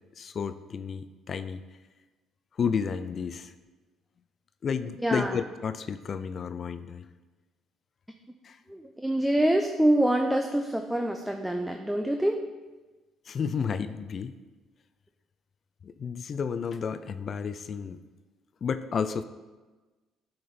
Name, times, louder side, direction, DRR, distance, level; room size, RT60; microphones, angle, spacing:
voice 1, 0.2-1.6 2.6-3.5 4.6-7.1 8.4-8.6 13.3-14.3 15.8-18.0 18.6-19.2, left 6 dB, 50° left, 12 dB, 0.4 m, -31 dB
voice 2, 5.0-5.4 8.7-12.4, right 1 dB, 5° right, 4 dB, 0.6 m, -25 dB
8.2 x 5.1 x 4.3 m, 1.2 s
supercardioid pair, 75°, 0 cm